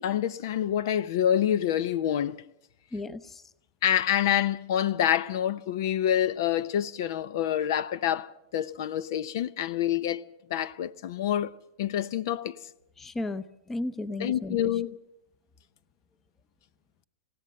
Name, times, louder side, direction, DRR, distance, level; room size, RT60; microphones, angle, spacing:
voice 1, 0.0-2.4 3.8-12.6 14.2-15.0, left 10 dB, 65° left, 0.7 m, -27 dB
voice 2, 2.9-3.4 13.0-14.7, left 2 dB, 10° left, 0.8 m, -34 dB
27.5 x 16.5 x 6.6 m
supercardioid pair, 145°, 2 cm